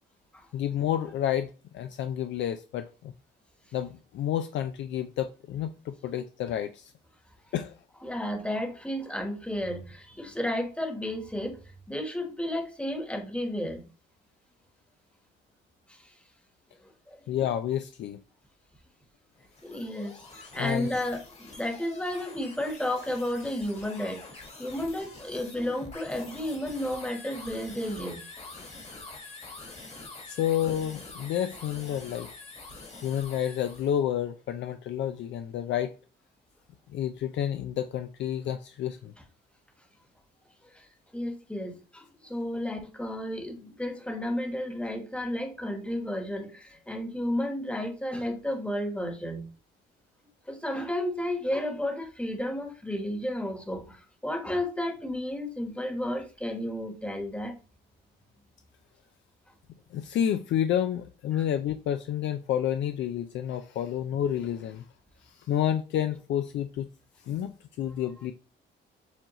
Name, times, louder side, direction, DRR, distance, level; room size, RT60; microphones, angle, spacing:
voice 1, 0.5-3.1 3.7-6.9 7.5-7.8 17.3-18.2 20.6-20.9 30.3-32.3 33.0-35.9 36.9-39.1 59.9-64.9 65.2-66.9 67.3-68.3, left 10 dB, 70° left, 0.4 m, -30 dB
voice 2, 8.0-11.6 11.9-13.8 17.1-17.2 19.6-20.2 20.5-28.2 40.8-40.9 41.1-49.5 50.5-54.0 54.2-57.6 61.3-61.4, left 1 dB, 5° left, 1.2 m, -32 dB
sound 1, 19.4-34.0, left 3 dB, 30° left, 1.4 m, -46 dB
7.1 x 2.4 x 3.0 m
cardioid pair, 90°, 20 cm